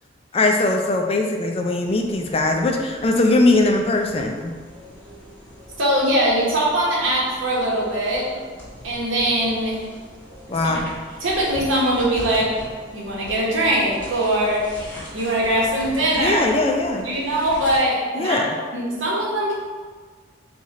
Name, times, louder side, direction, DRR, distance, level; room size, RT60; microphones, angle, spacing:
voice 1, 0.3-4.5 10.5-10.9 16.2-17.1 18.1-18.5, left 2 dB, 30° left, 3 dB, 0.4 m, -20 dB
sound 1, 1.9-17.8, left 1 dB, 10° left, 1.4 m, -41 dB
voice 2, 5.8-8.3 8.8-9.9 10.6-10.8 11.2-12.5 12.9-14.7 15.1-16.4 17.0-18.4 18.7-19.5, right 1 dB, 90° right, -4 dB, 1.1 m, -21 dB
4.6 x 2.4 x 4.1 m, 1.5 s
head